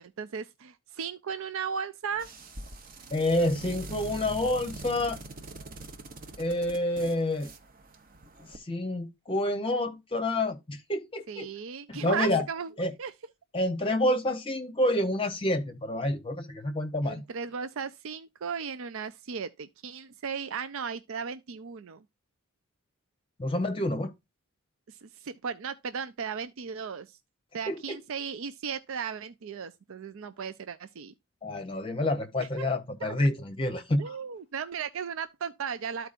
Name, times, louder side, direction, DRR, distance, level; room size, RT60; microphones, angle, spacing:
voice 1, 0.0-2.3 11.3-13.1 17.0-22.0 24.9-27.2 27.5-31.1 32.4-32.7 33.0-33.2 34.0-36.1, right 6 dB, 65° right, 0.5 m, -36 dB
sound 1, 2.1-8.6, right 2 dB, 40° right, 0.9 m, -44 dB
voice 2, 3.1-5.2 6.4-7.5 8.4-11.5 11.9-12.4 12.8-12.9 13.5-17.2 23.4-24.1 27.7-28.0 31.4-34.2, left 1 dB, 25° left, 0.8 m, -28 dB
13.5 x 4.5 x 2.5 m
head